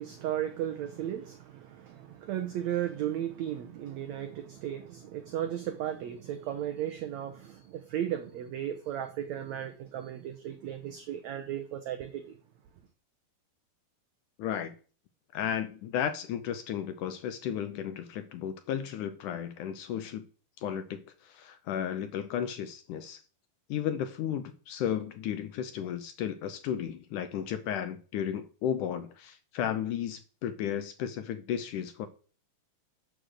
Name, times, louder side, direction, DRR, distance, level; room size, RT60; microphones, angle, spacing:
voice 1, 0.0-12.2, right 11 dB, 85° right, 1.5 m, -35 dB
voice 2, 14.4-14.7 15.3-20.3 20.6-23.2 23.7-32.1, left 9 dB, 75° left, 1.9 m, -34 dB
11.5 x 5.2 x 6.4 m
omnidirectional pair, 4.2 m